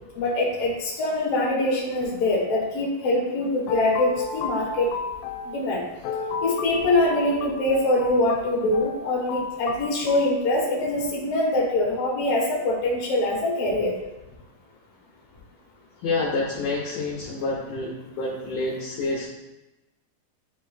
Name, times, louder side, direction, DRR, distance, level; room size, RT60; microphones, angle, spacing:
voice 1, 0.2-4.9 5.5-5.8 6.4-13.9, left 2 dB, 50° left, -3 dB, 2.2 m, -23 dB
sound 1, 3.4-10.4, left 4 dB, 90° left, 2.4 m, -33 dB
voice 2, 16.0-19.2, left 3 dB, 70° left, -3 dB, 2.1 m, -28 dB
10.0 x 4.1 x 2.7 m, 0.99 s
omnidirectional pair, 4.2 m